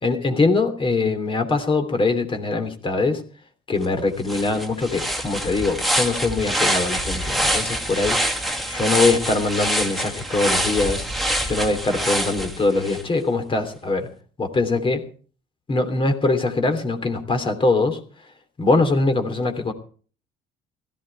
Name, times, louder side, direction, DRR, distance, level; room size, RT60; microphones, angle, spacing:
voice 1, 0.0-3.2 3.7-8.2 8.7-11.1 11.4-14.1 14.4-15.0 15.7-18.0 18.6-19.7, left 3 dB, 30° left, 6 dB, 3.1 m, -22 dB
sound 1, 3.8-3.9 4.2-13.0, right 1 dB, ahead, 2.3 m, -25 dB
16.5 x 14.5 x 4.5 m, 0.42 s
cardioid pair, 110°, 17 cm